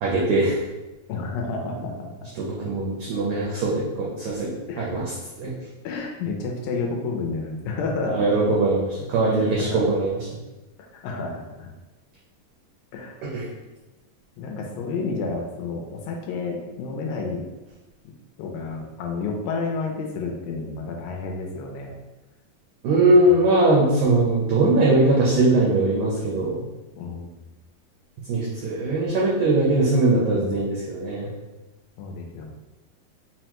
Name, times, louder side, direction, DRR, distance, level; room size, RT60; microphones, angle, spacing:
voice 1, 0.0-0.5 2.4-5.1 5.4-5.5 8.0-10.2 13.3-13.5 22.8-26.7 28.3-31.3, right 2 dB, 85° right, -5 dB, 1.6 m, -21 dB
voice 2, 1.1-2.1 4.7-4.9 5.8-8.3 9.3-9.9 11.0-11.7 12.9-13.2 14.4-17.5 18.4-21.9 23.2-23.3 27.0-27.3 32.0-32.5, left 4 dB, 80° left, 1 dB, 2.1 m, -30 dB
5.5 x 2.1 x 2.9 m, 1.1 s
omnidirectional pair, 4.1 m